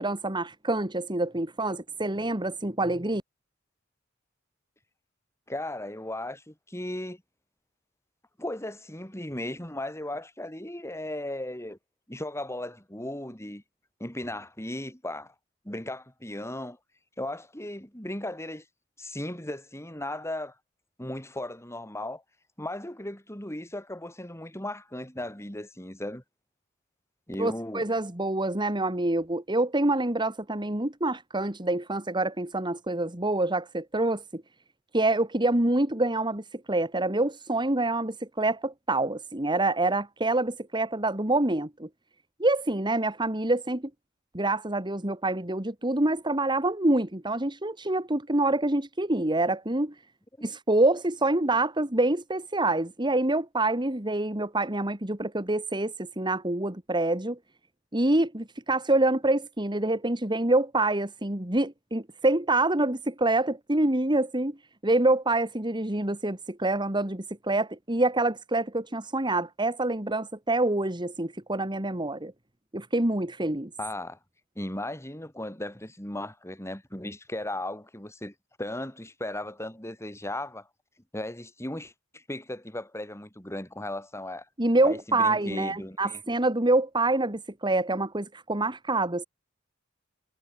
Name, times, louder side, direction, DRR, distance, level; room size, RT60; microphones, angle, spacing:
voice 1, 0.0-3.2 27.4-34.4 34.9-41.9 42.4-43.8 44.3-49.9 50.4-57.4 57.9-64.6 64.8-72.3 72.7-73.7 84.6-89.2, right 2 dB, 25° right, 2.4 m, -26 dB
voice 2, 5.5-7.2 8.4-11.8 12.1-13.6 14.0-15.3 15.6-16.8 17.2-18.6 19.0-20.5 21.0-22.2 22.6-26.2 27.3-27.9 50.4-50.5 73.8-74.2 74.5-78.3 78.6-80.7 81.1-84.5 84.8-86.2, left 1 dB, 15° left, 6.5 m, -36 dB
head